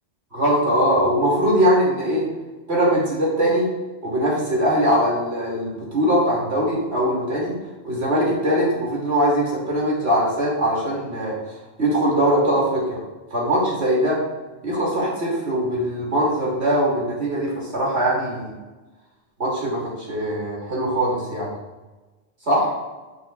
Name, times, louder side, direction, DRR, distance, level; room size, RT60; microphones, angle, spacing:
voice 1, 0.3-2.3 2.7-3.7 4.0-7.5 7.8-11.3 11.8-13.0 13.3-14.2 14.6-18.5 19.4-21.5 22.5-22.7, equal, 70° right, -5 dB, 2.9 m, -21 dB
8.6 x 7.2 x 2.4 m, 1.2 s
omnidirectional pair, 1.1 m